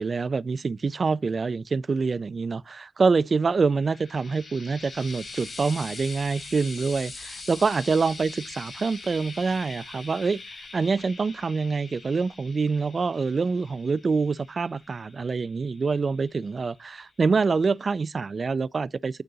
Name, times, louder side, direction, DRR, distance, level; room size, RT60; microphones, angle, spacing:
voice 1, 0.0-10.4 10.7-19.2, right 4 dB, 60° right, 0.3 m, -26 dB
Frying (food), 3.5-17.0 17.9-18.0, left 3 dB, 75° left, 4.5 m, -43 dB
9.2 x 3.8 x 3.9 m
cardioid pair, 55°, 0 cm